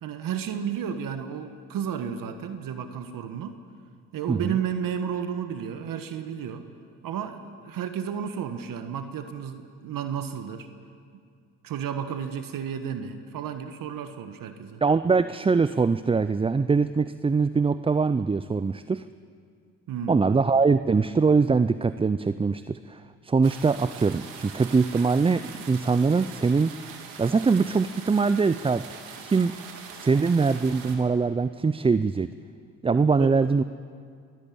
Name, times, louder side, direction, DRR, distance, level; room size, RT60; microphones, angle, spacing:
voice 1, 0.0-3.6 4.1-6.6 7.0-10.7 11.1-11.2 11.6-14.8 19.9-20.2 33.2-33.3, right 8 dB, 60° right, 9 dB, 1.4 m, -32 dB
voice 2, 14.8-19.0 20.1-26.8 27.2-29.6 30.0-32.3 32.8-33.6, right 4 dB, 15° right, 13 dB, 0.5 m, -23 dB
sound 1, 23.4-31.0, right 6 dB, 85° right, 2.4 m, -42 dB
23.0 x 14.0 x 8.7 m, 2.2 s
hypercardioid pair, 60°, 37 cm